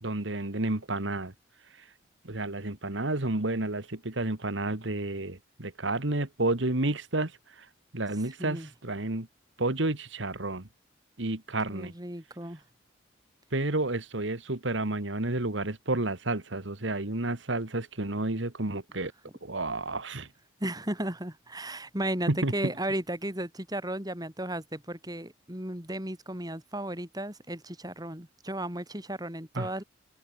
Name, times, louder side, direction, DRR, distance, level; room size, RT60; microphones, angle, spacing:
voice 1, 0.0-1.3 2.2-7.3 7.9-9.3 9.6-10.7 11.2-11.9 13.5-19.1 19.4-20.3 22.3-22.5 29.6-29.7, right 2 dB, 75° right, 2.0 m, -30 dB
voice 2, 8.1-8.7 11.7-12.6 20.6-29.8, right 1 dB, 20° right, 4.9 m, -35 dB
head